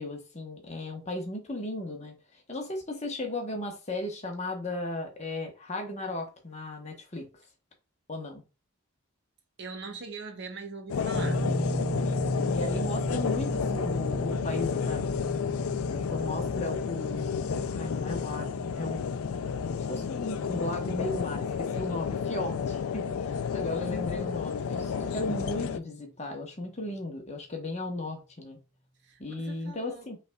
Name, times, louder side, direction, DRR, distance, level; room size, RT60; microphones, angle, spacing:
voice 1, 0.0-7.3 8.1-8.4 12.5-15.0 15.8-17.4 17.7-19.0 19.8-28.6 29.2-30.2, left 2 dB, 30° left, 1.0 m, -36 dB
voice 2, 9.6-11.5 29.0-30.1, right 4 dB, 55° right, 0.9 m, -41 dB
sound 1, 10.9-25.8, left 6 dB, 85° left, 0.4 m, -31 dB
sound 2, 11.1-24.0, equal, 15° right, 0.6 m, -36 dB
5.5 x 3.3 x 2.3 m
head